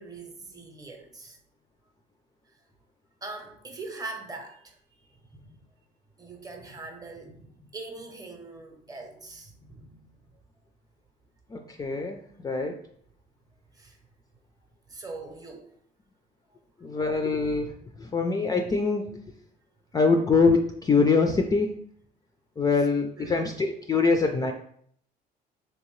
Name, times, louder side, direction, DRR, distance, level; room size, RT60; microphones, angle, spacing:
voice 1, 0.0-1.4 3.2-4.8 5.3-5.6 6.2-10.0 13.7-14.0 14.9-15.7 22.8-22.9 23.2-23.4, right 3 dB, 20° right, 0.7 m, -42 dB
voice 2, 11.5-12.8 16.8-19.2 19.9-21.7 22.6-24.5, left 4 dB, 20° left, 0.3 m, -24 dB
3.3 x 2.7 x 3.1 m
cardioid pair, 110°, 17 cm